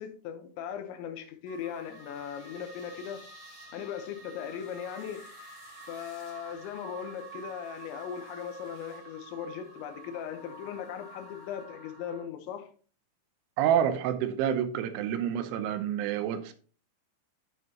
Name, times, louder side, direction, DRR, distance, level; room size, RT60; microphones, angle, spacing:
voice 1, 0.0-3.2 3.7-5.2 5.9-12.7, left 8 dB, 75° left, 3.0 m, -38 dB
sound 1, 1.5-12.2, right 3 dB, 10° left, 1.9 m, -49 dB
voice 2, 13.6-16.5, right 9 dB, 80° right, 3.1 m, -28 dB
9.3 x 7.7 x 2.8 m
omnidirectional pair, 5.7 m